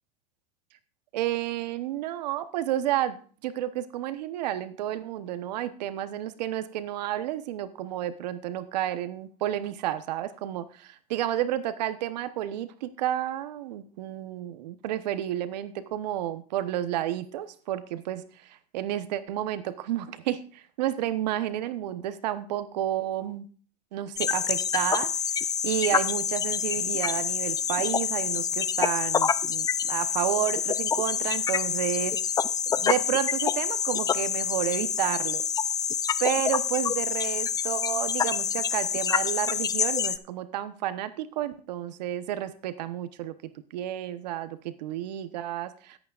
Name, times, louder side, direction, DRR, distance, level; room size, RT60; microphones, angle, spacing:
voice 1, 1.1-23.5 23.9-25.1 25.6-32.2 32.8-35.4 36.2-43.3 43.7-46.0, right 12 dB, 80° right, 12 dB, 1.0 m, -31 dB
sound 1, 24.2-40.2, left 7 dB, 20° left, 0.4 m, -27 dB
18.0 x 8.6 x 2.5 m, 0.42 s
supercardioid pair, 125°, 21 cm